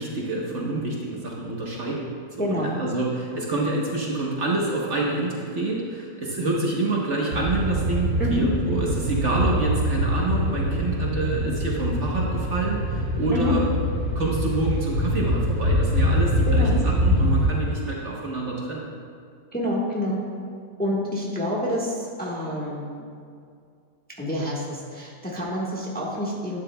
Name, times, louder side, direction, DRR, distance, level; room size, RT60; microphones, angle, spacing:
voice 1, 0.0-13.7 14.1-18.9, right 2 dB, 50° right, -3 dB, 1.3 m, -27 dB
voice 2, 2.4-2.7 8.2-8.5 13.3-13.5 16.5-16.8 19.5-20.2 20.8-23.0 24.2-26.6, left 1 dB, 5° left, -5 dB, 1.1 m, -27 dB
sound 1, 7.3-17.4, equal, 75° right, 2.6 m, -24 dB
11.5 x 9.9 x 2.2 m, 2.3 s
omnidirectional pair, 1.7 m